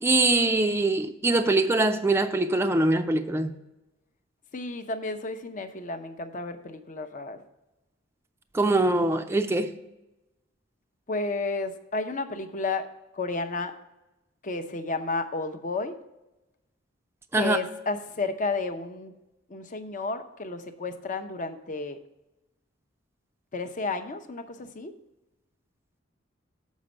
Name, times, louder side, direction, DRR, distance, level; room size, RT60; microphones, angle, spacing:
voice 1, 0.0-3.5 8.5-9.8 17.3-17.6, right 2 dB, 15° right, 0.4 m, -23 dB
voice 2, 4.5-7.4 11.1-12.9 13.1-13.7 14.4-15.9 17.3-19.1 19.5-22.0 23.5-24.9, left 3 dB, 40° left, 0.7 m, -32 dB
7.3 x 5.1 x 6.5 m
head